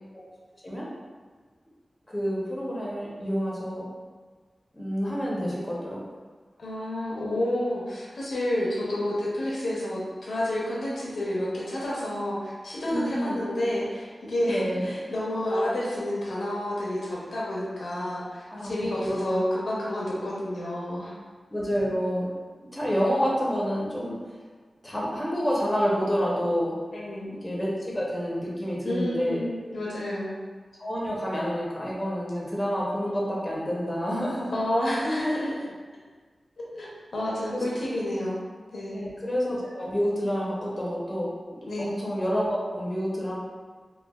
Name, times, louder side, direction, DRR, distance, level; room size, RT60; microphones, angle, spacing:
voice 1, 2.1-3.9 4.7-6.0 12.8-13.4 14.5-14.9 18.5-19.4 21.5-22.3 22.7-24.2 24.8-26.8 27.2-29.4 30.8-34.6 35.2-35.4 37.5-37.6 38.9-41.3 41.8-43.4, equal, 20° left, -5 dB, 0.7 m, -28 dB
voice 2, 6.6-21.1 26.9-27.3 28.8-30.4 34.5-35.6 36.7-36.9 37.1-38.4 38.7-39.1 41.7-41.9, left 1 dB, 90° left, -5 dB, 0.6 m, -29 dB
3.1 x 2.2 x 2.2 m, 1.5 s
wide cardioid pair, 95°, 0 cm